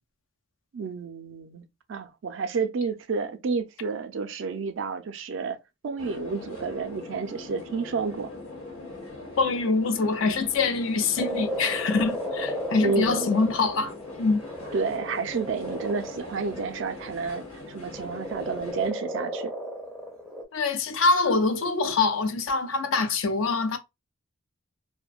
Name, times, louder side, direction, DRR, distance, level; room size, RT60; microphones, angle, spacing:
voice 1, 0.7-1.6 1.9-5.6 5.8-8.3 12.8-13.3 14.7-19.5, right 4 dB, 60° right, 0.4 m, -30 dB
sound 1, 6.0-18.9, left 2 dB, 85° left, 1.1 m, -42 dB
voice 2, 9.4-13.9 14.2-14.4 20.5-23.8, left 3 dB, 65° left, 0.4 m, -24 dB
Frog, 11.2-17.1 17.9-20.5, equal, ahead, 0.5 m, -34 dB
2.5 x 2.1 x 2.2 m
head